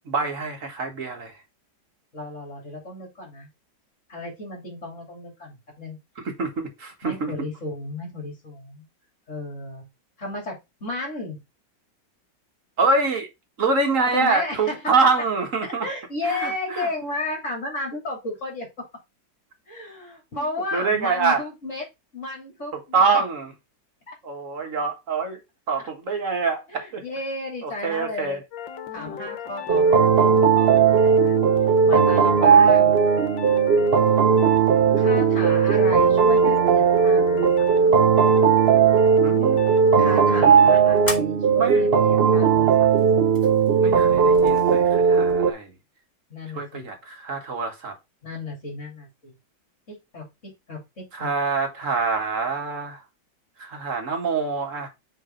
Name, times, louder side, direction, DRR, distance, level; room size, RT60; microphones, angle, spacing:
voice 1, 0.0-1.3 6.3-7.3 12.8-13.3 13.6-15.9 16.2-16.9 20.3-20.4 20.7-21.4 22.7-23.5 24.2-25.4 25.7-27.0 27.6-28.4 29.1-29.2 39.2-39.6 41.6-41.9 42.2-42.4 43.8-45.7 46.5-47.9 51.1-53.0 53.6-54.9, right 4 dB, 45° right, 1.7 m, -25 dB
voice 2, 2.1-3.5 4.1-6.0 7.0-8.8 9.3-9.9 10.2-11.4 14.0-14.8 15.6-18.7 19.7-21.8 22.1-23.2 24.1-24.2 26.7-28.4 28.9-31.4 31.9-33.0 35.0-37.7 40.0-42.9 46.3-46.9 48.2-49.4 49.9-51.3, left 2 dB, 40° left, 3.4 m, -33 dB
sound 1, 28.5-41.2, left 8 dB, 80° left, 1.7 m, -36 dB
sound 2, 29.7-45.5, right 6 dB, 60° right, 0.6 m, -17 dB
sound 3, 39.5-45.4, left 1 dB, 10° left, 1.8 m, -39 dB
7.4 x 4.1 x 3.8 m
omnidirectional pair, 2.0 m